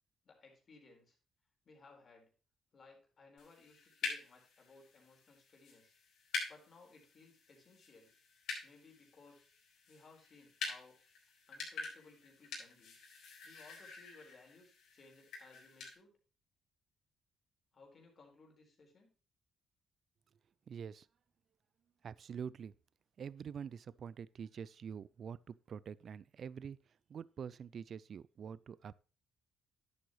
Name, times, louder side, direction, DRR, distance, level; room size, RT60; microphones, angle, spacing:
voice 1, 0.2-1.2 1.6-2.3 2.7-5.9 6.5-8.1 8.6-9.5 9.9-11.0 11.5-13.0 13.4-16.1 17.7-19.1, left 3 dB, 45° left, 4.2 m, -61 dB
sound 1, 3.4-15.9, left 4 dB, 80° left, 4.0 m, -47 dB
voice 2, 20.7-21.1 22.0-22.7 23.2-26.8 27.1-28.9, right 7 dB, 55° right, 0.4 m, -46 dB
11.0 x 8.0 x 3.1 m
cardioid pair, 90°, 0 cm